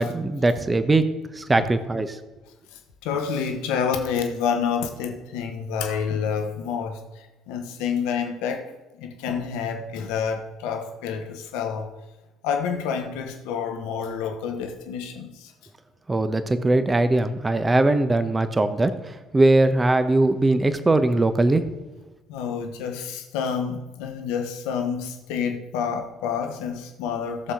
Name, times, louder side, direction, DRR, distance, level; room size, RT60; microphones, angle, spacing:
voice 1, 0.0-2.2 16.1-21.6, right 2 dB, 20° right, 10 dB, 1.1 m, -21 dB
voice 2, 2.7-8.6 9.0-11.9 12.4-15.5 22.3-27.5, left 6 dB, 65° left, 5 dB, 1.3 m, -28 dB
16.5 x 6.9 x 3.8 m, 1.1 s
figure-of-eight pair, 55°, 0 cm